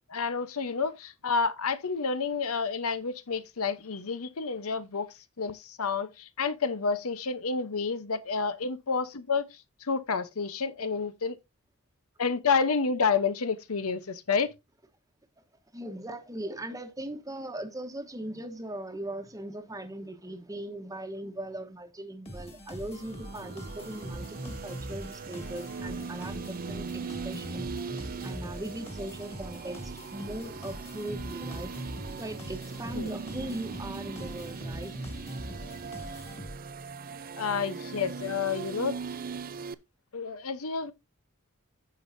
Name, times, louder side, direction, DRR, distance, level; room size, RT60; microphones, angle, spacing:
voice 1, 0.1-9.5 9.8-11.4 12.2-14.5 32.9-33.1 37.4-39.0 40.1-40.9, left 5 dB, 85° left, 0.9 m, -29 dB
voice 2, 15.7-27.7 28.2-31.8 32.2-34.9, right 1 dB, 15° right, 1.1 m, -39 dB
sound 1, 22.3-36.8, equal, 30° left, 2.2 m, -42 dB
sound 2, 22.8-39.7, right 5 dB, 40° right, 0.5 m, -40 dB
16.0 x 5.4 x 2.7 m
head